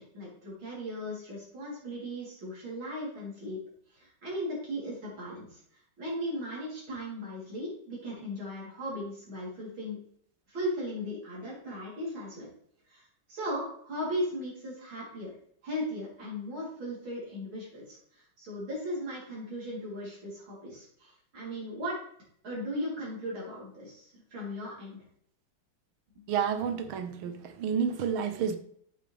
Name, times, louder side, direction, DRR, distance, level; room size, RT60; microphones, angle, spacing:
voice 1, 0.0-3.6 3.9-5.6 6.0-10.0 10.5-12.5 12.9-13.0 13.3-15.3 15.6-22.0 22.4-25.0 26.2-26.3, equal, 75° right, -6 dB, 4.2 m, -37 dB
voice 2, 26.3-28.6, right 7 dB, 90° right, 9 dB, 1.7 m, -30 dB
7.9 x 6.8 x 3.4 m, 0.64 s
omnidirectional pair, 2.2 m